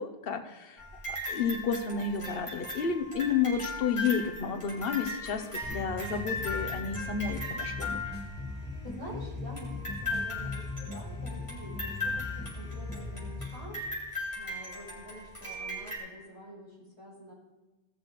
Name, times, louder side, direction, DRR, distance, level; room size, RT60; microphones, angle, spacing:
voice 1, 0.0-8.0, left 6 dB, 65° left, 7 dB, 1.2 m, -31 dB
sound 1, 0.8-8.7 9.6-16.0, left 2 dB, 30° left, 3.6 m, -38 dB
sound 2, 5.6-13.7, left 2 dB, 10° left, 1.8 m, -39 dB
voice 2, 8.8-13.8 14.3-17.3, equal, 35° right, -6 dB, 4.6 m, -47 dB
17.0 x 6.5 x 4.1 m, 1.2 s
omnidirectional pair, 1.0 m